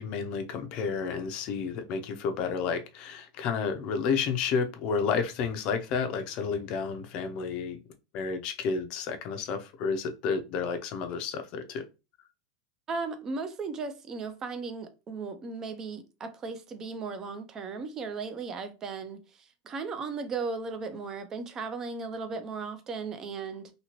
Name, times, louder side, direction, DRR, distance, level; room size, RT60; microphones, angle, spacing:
voice 1, 0.0-7.8 8.1-11.8, left 5 dB, 40° left, 0.5 m, -31 dB
voice 2, 12.9-19.2 19.6-23.7, right 4 dB, 25° right, 0.5 m, -36 dB
2.8 x 2.8 x 2.9 m
supercardioid pair, 150°, 2 cm